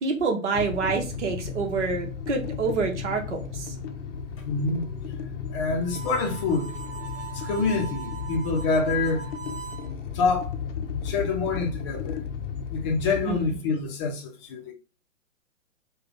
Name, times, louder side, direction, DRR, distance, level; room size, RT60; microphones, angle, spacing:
voice 1, 0.0-3.7 13.2-13.6, right 4 dB, 60° right, 1.2 m, -27 dB
sound 1, 0.5-13.6, left 6 dB, 65° left, 0.7 m, -34 dB
voice 2, 4.4-4.8 5.5-6.7 7.3-9.3 10.1-12.2 12.7-14.7, left 4 dB, 25° left, 0.6 m, -27 dB
Harmonica, 5.8-9.9, right 6 dB, 15° right, 0.9 m, -40 dB
3.2 x 2.4 x 3.8 m
hypercardioid pair, 130°, 39 cm